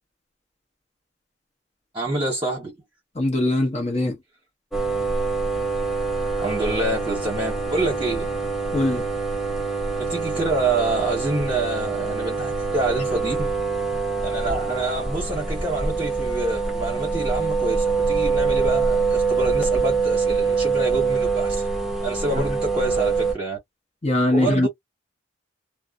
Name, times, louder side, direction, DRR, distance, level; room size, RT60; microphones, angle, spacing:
voice 1, 1.9-2.7 6.4-8.3 10.0-13.5 14.2-21.7 22.0-23.6 24.3-24.7, right 2 dB, 20° right, 1.0 m, -27 dB
voice 2, 3.2-4.2 8.7-9.1 22.3-22.4 24.0-24.7, left 1 dB, 30° left, 0.8 m, -21 dB
sound 1, 4.7-23.3, right 4 dB, ahead, 0.7 m, -24 dB
2.5 x 2.1 x 2.3 m
head